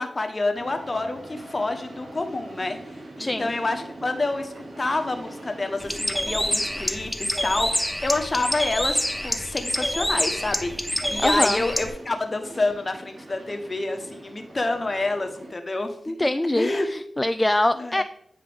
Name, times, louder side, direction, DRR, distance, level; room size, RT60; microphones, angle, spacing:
voice 1, 0.0-2.8 3.2-10.7 11.1-16.3 16.5-16.9 17.8-18.0, left 2 dB, 40° left, 6 dB, 1.1 m, -28 dB
sound 1, 0.5-15.5, right 1 dB, 90° right, 1.9 m, -43 dB
voice 2, 3.2-3.5 11.2-11.6 16.1-18.0, left 1 dB, 20° left, 10 dB, 0.3 m, -24 dB
Bird, 5.8-11.9, equal, 5° left, 0.9 m, -27 dB
9.4 x 4.7 x 3.5 m, 0.71 s
cardioid pair, 50°, 0 cm